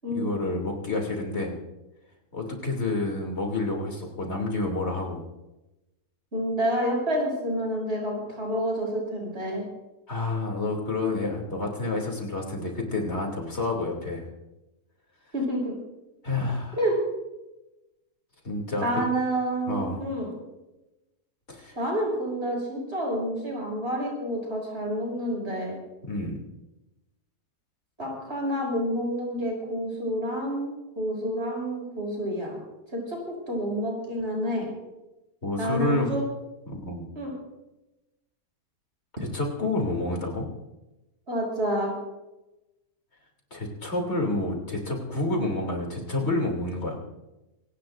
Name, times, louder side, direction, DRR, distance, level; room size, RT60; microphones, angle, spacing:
voice 1, 0.1-1.5 2.3-5.2 10.1-14.3 16.2-16.8 18.4-18.9 19.7-20.0 21.5-21.8 26.0-26.4 35.4-36.2 36.7-37.0 39.3-40.5 43.5-47.0, left 2 dB, 45° left, 1 dB, 3.2 m, -29 dB
voice 2, 6.3-9.6 15.3-15.7 16.8-17.0 18.8-20.4 21.7-25.7 28.0-32.6 32.9-34.7 35.6-36.2 37.1-37.3 41.3-41.9, equal, 40° right, -1 dB, 6.5 m, -28 dB
25.5 x 17.5 x 2.6 m, 1.0 s
omnidirectional pair, 1.6 m